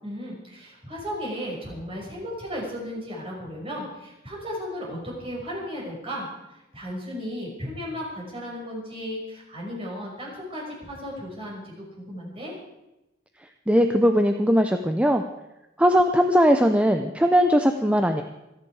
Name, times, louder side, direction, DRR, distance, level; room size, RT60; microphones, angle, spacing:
voice 1, 0.0-6.3 6.7-12.5, equal, 30° right, -3 dB, 5.9 m, -35 dB
voice 2, 13.7-15.2 15.8-18.2, equal, 5° right, 6 dB, 0.7 m, -19 dB
26.5 x 10.0 x 4.8 m, 0.94 s
head